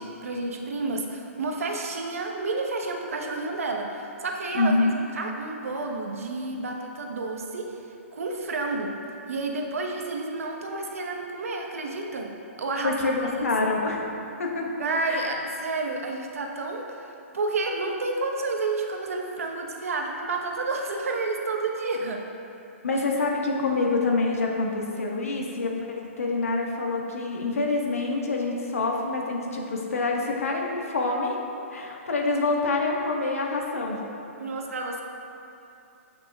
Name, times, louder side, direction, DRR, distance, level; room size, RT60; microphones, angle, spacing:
voice 1, 0.0-7.8 8.1-8.9 9.3-13.1 14.7-22.2 34.4-35.0, right 3 dB, 80° right, 1 dB, 1.2 m, -30 dB
voice 2, 4.5-5.0 12.8-14.1 14.4-14.7 15.1-15.3 22.8-31.4 31.7-34.0, left 3 dB, 85° left, 0 dB, 1.6 m, -26 dB
16.5 x 6.1 x 2.4 m, 2.8 s
hypercardioid pair, 140°, 8 cm